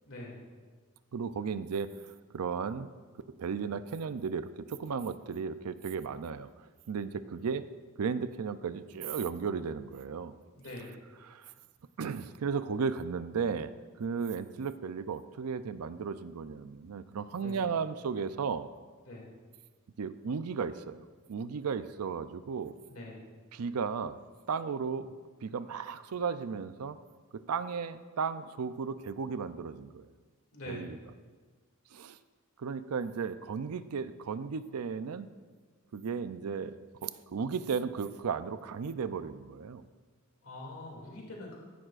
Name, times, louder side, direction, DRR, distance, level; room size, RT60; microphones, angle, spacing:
voice 1, 0.0-0.4 10.5-10.9 17.4-17.6 19.1-19.3 22.8-23.2 30.5-30.9 40.4-41.5, left 2 dB, 65° left, -2 dB, 2.5 m, -44 dB
voice 2, 1.1-1.9 2.3-2.9 3.3-6.5 6.9-7.7 8.0-10.3 11.2-11.5 12.0-18.7 20.0-22.7 23.5-24.2 24.5-25.1 25.4-27.0 27.3-30.1 30.7-31.0 31.9-32.2 32.6-35.3 35.9-39.9, right 5 dB, 85° right, 13 dB, 0.5 m, -35 dB
15.0 x 11.0 x 2.5 m, 1.5 s
head